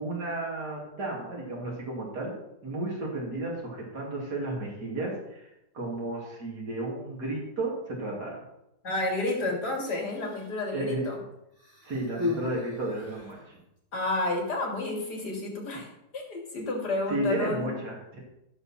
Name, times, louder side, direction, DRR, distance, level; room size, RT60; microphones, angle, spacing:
voice 1, 0.0-2.4 2.6-8.4 10.7-11.1 11.8-13.6 17.1-18.2, right 2 dB, 80° right, -3 dB, 3.4 m, -33 dB
voice 2, 8.8-11.2 13.9-17.8, left 2 dB, 85° left, -1 dB, 3.4 m, -31 dB
Human voice, 9.7-10.6 11.5-13.5 14.4-14.5, left 2 dB, 10° right, 4.6 m, -37 dB
14.0 x 6.9 x 4.4 m, 0.85 s
omnidirectional pair, 1.7 m